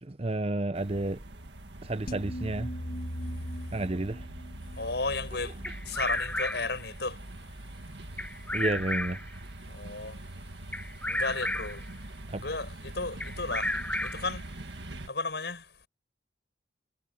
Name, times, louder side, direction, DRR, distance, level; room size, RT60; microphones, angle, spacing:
voice 1, 0.0-1.2 1.8-2.8 3.7-4.3 8.5-9.2 12.3-12.4, right 2 dB, 35° right, 0.8 m, -31 dB
sound 1, 0.7-15.1, right 1 dB, 90° right, 1.7 m, -44 dB
sound 2, 2.1-7.3, equal, 55° left, 2.1 m, -40 dB
voice 2, 4.8-5.6 5.9-7.2 9.7-10.2 11.1-11.8 12.3-13.7 14.0-14.4 15.1-15.6, left 3 dB, 70° left, 5.7 m, -34 dB
Bird vocalization bird call bird song, 5.6-6.8 8.2-9.4 10.7-11.9 13.2-14.4, left 1 dB, 10° left, 0.8 m, -32 dB
head